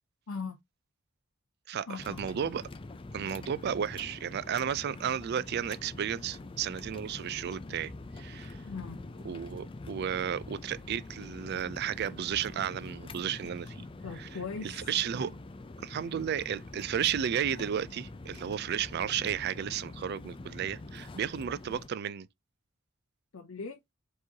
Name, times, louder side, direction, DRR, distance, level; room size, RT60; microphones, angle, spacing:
voice 1, 0.3-0.6 1.9-2.2 8.7-9.0 14.0-14.9 23.3-23.8, left 4 dB, 80° left, 0.6 m, -39 dB
voice 2, 1.7-2.6 3.1-8.6 9.2-13.8 14.2-14.3 14.6-15.4 15.8-22.3, right 8 dB, 50° right, 0.3 m, -33 dB
sound 1, 2.0-21.9, left 2 dB, 25° left, 0.4 m, -45 dB
4.6 x 3.0 x 2.8 m
head